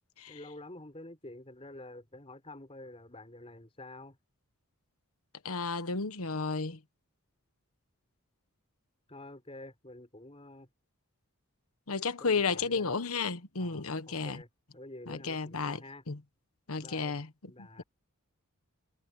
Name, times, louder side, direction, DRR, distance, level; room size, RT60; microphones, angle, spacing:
voice 1, 0.3-4.2 9.1-10.7 12.2-12.9 13.6-14.5 14.7-16.0 16.8-17.1 17.5-17.8, left 2 dB, 25° left, 6.0 m, -48 dB
voice 2, 5.4-6.8 11.9-14.4 15.1-15.8 16.1-16.2 16.7-17.3 17.6-17.8, left 4 dB, 75° left, 1.2 m, -32 dB
head